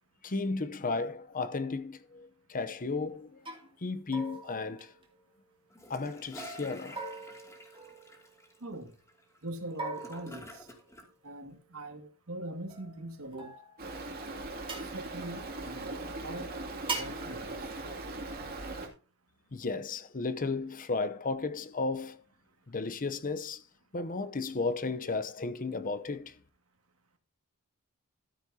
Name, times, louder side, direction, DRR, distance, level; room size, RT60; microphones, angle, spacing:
voice 1, 0.2-3.4 3.8-4.9 5.9-7.0 19.5-22.2 22.7-23.6 23.9-26.3, left 3 dB, 40° left, 0.8 m, -34 dB
sound 1, 2.8-3.0 3.5-3.7 4.1-5.5 6.4-8.6 9.8-11.2 12.7-14.0 14.7-14.9 16.9-17.3, right 3 dB, 25° right, 2.5 m, -42 dB
Gurgling / Toilet flush, 5.7-11.1, left 1 dB, 15° left, 2.5 m, -51 dB
voice 2, 8.6-8.9 9.4-10.7 11.2-13.5 14.8-16.5 16.9-17.8, right 1 dB, 75° right, 2.1 m, -42 dB
Stream, 13.8-18.9, right 2 dB, 45° right, 2.6 m, -40 dB
13.0 x 9.7 x 2.8 m
head